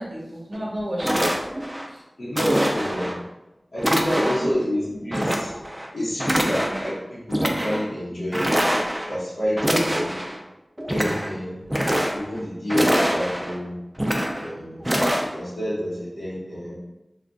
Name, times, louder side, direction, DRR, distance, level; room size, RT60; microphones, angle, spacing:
voice 1, 0.0-1.4 1.9-2.0 4.1-4.5 4.9-5.0 6.7-6.9, equal, 65° right, -3 dB, 0.8 m, -32 dB
sound 1, 0.5-0.6 1.0-1.9 2.4-3.2 3.8-4.5 5.1-5.9 6.2-6.9 7.3-7.8 8.3-9.2 9.6-10.4 10.8-11.3 11.6-12.4 12.7-13.6 14.0-14.5 14.8-15.2, equal, 20° right, 0.4 m, -24 dB
voice 2, 2.2-3.2 3.7-5.5 5.9-8.8 9.1-10.2 10.9-11.7 12.1-13.7 14.4-15.0 15.2-16.7, equal, 80° left, -10 dB, 0.8 m, -28 dB
2.4 x 2.2 x 3.7 m, 0.95 s
wide cardioid pair, 50°, 0 cm